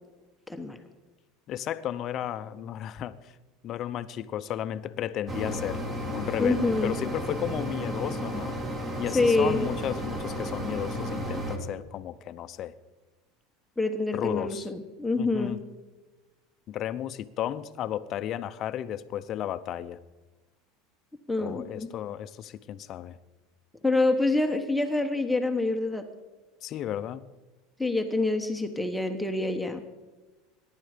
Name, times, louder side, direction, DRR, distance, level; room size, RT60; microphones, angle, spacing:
voice 1, 0.5-0.8 6.4-6.9 9.1-9.6 13.8-15.6 21.3-21.9 23.8-26.0 27.8-29.8, left 2 dB, 5° left, 4 dB, 1.1 m, -26 dB
voice 2, 1.5-3.3 3.6-5.8 6.1-8.6 9.0-12.7 14.1-14.7 15.2-15.6 16.7-20.0 21.4-23.2 26.6-27.3, left 11 dB, 40° left, 12 dB, 0.7 m, -33 dB
Mechanisms, 5.3-11.6, equal, 30° right, 2.6 m, -33 dB
23.0 x 10.5 x 5.1 m, 1.2 s
supercardioid pair, 130°, 0 cm